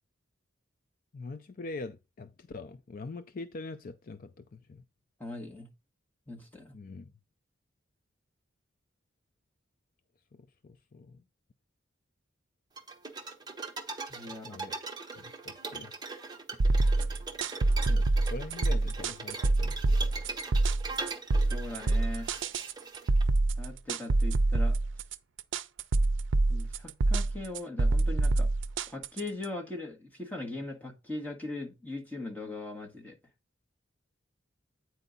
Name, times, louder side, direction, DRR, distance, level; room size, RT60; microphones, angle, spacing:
voice 1, 1.1-4.8 6.7-7.1 10.3-11.2 14.4-14.8 15.2-15.9 17.9-20.0, left 3 dB, 45° left, 0.4 m, -43 dB
voice 2, 5.2-5.7 6.3-6.7 14.1-14.6 21.5-22.3 23.6-24.8 26.5-28.5 28.9-33.2, left 2 dB, 10° left, 1.6 m, -40 dB
sound 1, 12.8-23.2, right 3 dB, 20° right, 0.9 m, -40 dB
sound 2, 16.6-29.4, right 2 dB, 75° right, 0.5 m, -26 dB
9.0 x 4.6 x 3.9 m
head